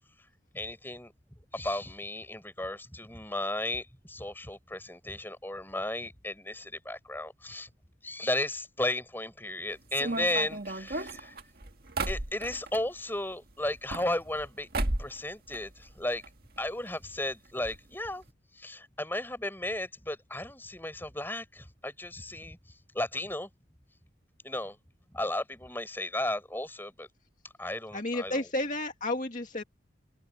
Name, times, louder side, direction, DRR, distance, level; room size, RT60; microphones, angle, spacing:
voice 1, 0.5-1.1 1.5-7.7 8.0-11.3 12.1-14.7 15.0-16.2 16.6-18.2 18.5-22.6 22.9-23.5 24.4-24.8 25.1-27.1 27.6-28.4, left 1 dB, 10° left, 6.5 m, -34 dB
sound 1, 9.9-12.8 13.7-14.5 14.7-15.2 15.5-16.3 16.6-16.7 16.9-17.0 17.6-17.8 18.0-18.2, right 2 dB, 50° right, 1.8 m, -34 dB
voice 2, 27.9-29.6, left 2 dB, 45° left, 2.1 m, -31 dB
open air
head